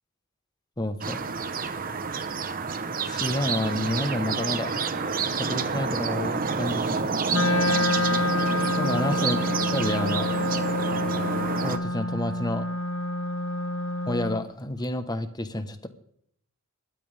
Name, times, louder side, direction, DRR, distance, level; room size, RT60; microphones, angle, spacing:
voice 1, 0.8-1.3 3.1-4.9 5.3-7.1 7.7-7.8 8.8-9.5 9.7-10.3 11.6-12.7 14.1-15.9, left 1 dB, 20° left, 9 dB, 1.2 m, -29 dB
sound 1, 1.0-11.8, right 5 dB, 40° right, 1.0 m, -29 dB
Wind instrument woodwind instrument, 7.3-14.5, left 1 dB, 60° left, 1.1 m, -27 dB
29.0 x 13.0 x 3.5 m, 0.73 s
head